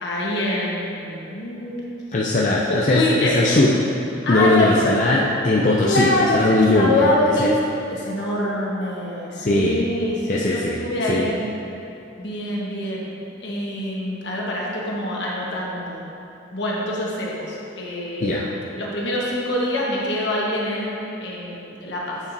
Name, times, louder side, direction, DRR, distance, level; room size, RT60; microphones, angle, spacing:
voice 1, 0.0-1.8 2.7-3.6 4.2-5.1 5.8-7.5 7.9-11.3 12.2-13.1 13.4-16.0 16.5-18.5 18.8-22.2, left 1 dB, 70° left, -4 dB, 1.3 m, -25 dB
voice 2, 2.1-3.7 4.3-7.0 7.4-7.6 9.4-9.8 10.3-11.3 18.2-18.5, left 2 dB, 40° left, -3 dB, 0.4 m, -19 dB
8.1 x 7.0 x 2.7 m, 2.9 s
head